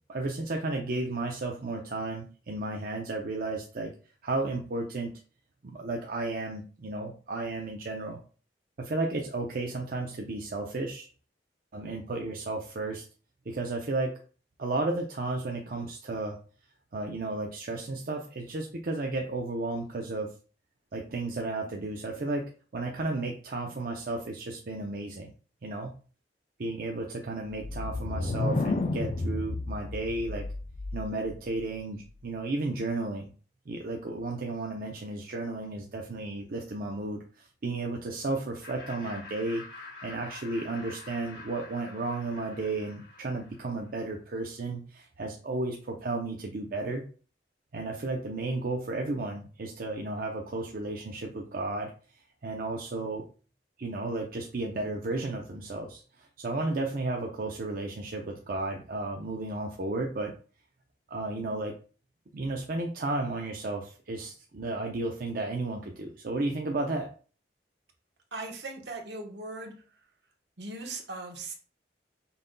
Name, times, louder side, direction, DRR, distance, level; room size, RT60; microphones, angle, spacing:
voice 1, 0.1-3.9 4.2-5.1 5.6-8.2 8.8-11.1 11.7-13.0 13.5-14.1 14.6-16.4 16.9-20.3 20.9-25.3 25.6-25.9 26.6-30.4 30.9-33.3 33.7-39.6 40.0-47.0 47.7-51.9 52.4-53.2 53.8-60.3 61.1-61.8 62.3-67.1, right 2 dB, 55° right, 1 dB, 0.6 m, -33 dB
sound 1, 27.5-31.3, left 2 dB, 40° left, 0.4 m, -31 dB
Laughter, 38.6-43.9, left 3 dB, 90° left, 1.5 m, -47 dB
voice 2, 68.3-70.0 70.6-71.5, right 2 dB, 75° right, 2 dB, 1.2 m, -39 dB
5.6 x 3.9 x 2.2 m, 0.39 s
head